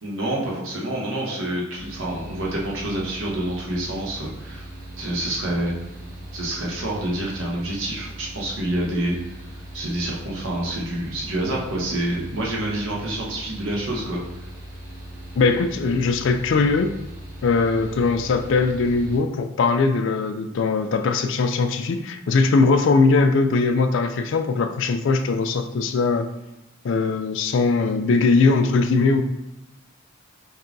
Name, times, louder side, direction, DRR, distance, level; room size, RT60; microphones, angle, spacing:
voice 1, 0.0-4.7 5.0-5.7 6.3-14.2, right 1 dB, 70° right, -3 dB, 1.0 m, -27 dB
Mechanical fan, 1.7-19.2, right 1 dB, 40° right, 0.8 m, -39 dB
voice 2, 15.4-17.0 17.4-26.3 26.8-29.2, left 4 dB, 60° left, 8 dB, 0.3 m, -20 dB
6.5 x 2.3 x 2.5 m, 0.94 s
head